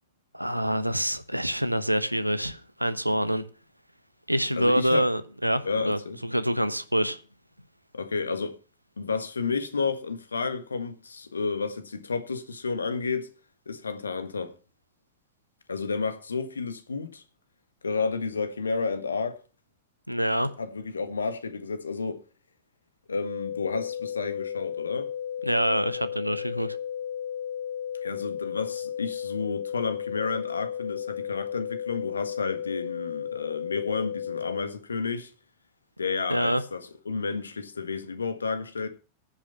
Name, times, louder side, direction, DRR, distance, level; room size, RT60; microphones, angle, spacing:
voice 1, 0.3-3.4 4.3-7.2 20.1-20.5 25.5-26.8 36.3-36.6, equal, 90° right, 0.9 m, -26 dB
voice 2, 4.6-5.1 5.6-6.2 7.9-8.5 9.0-13.3 13.7-14.5 15.7-17.2 17.8-19.4 20.6-22.2 23.1-25.1 28.0-35.3 36.0-38.9, left 4 dB, 75° left, 1.6 m, -31 dB
sound 1, 23.2-34.6, left 9 dB, 40° left, 5.2 m, -34 dB
10.0 x 8.7 x 5.6 m
figure-of-eight pair, 90°, 0 cm